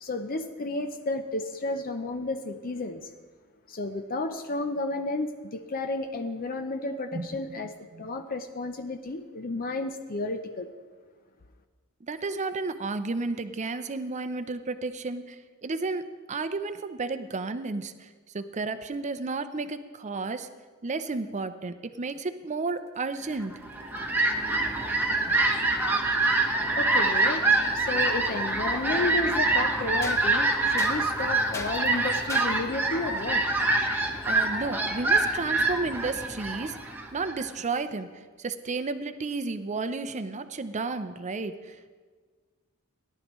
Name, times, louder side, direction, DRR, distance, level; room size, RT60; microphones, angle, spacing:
voice 1, 0.0-3.1 3.7-7.7 8.0-10.7 26.8-27.5 27.7-33.4, left 2 dB, 40° left, 7 dB, 0.6 m, -32 dB
voice 2, 12.0-20.5 20.8-23.6 25.3-25.4 34.3-36.8 37.1-41.9, right 3 dB, 35° right, 11 dB, 0.6 m, -32 dB
sound 1, 22.7-24.1 25.4-25.5 27.6-27.7 28.4-28.5 30.0-32.7, left 2 dB, 15° left, 0.9 m, -41 dB
Fowl, 23.5-37.5, right 2 dB, 10° right, 1.1 m, -25 dB
17.5 x 11.5 x 3.1 m, 1.5 s
head